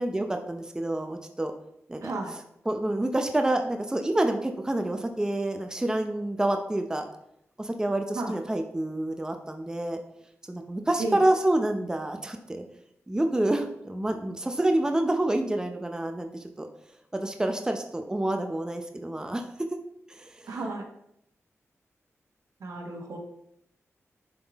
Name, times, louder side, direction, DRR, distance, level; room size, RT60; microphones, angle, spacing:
voice 1, 0.0-1.5 1.9-2.1 2.7-7.0 7.6-10.0 10.5-12.7 13.1-16.3 16.6-16.7 17.1-19.8 20.2-20.3, right 1 dB, 15° right, 5 dB, 0.6 m, -28 dB
voice 2, 2.0-2.3 8.1-8.4 11.0-11.3 20.5-20.9 22.6-23.2, right 2 dB, 80° right, 1 dB, 1.3 m, -33 dB
10.5 x 3.7 x 3.5 m, 0.77 s
wide cardioid pair, 95°, 5 cm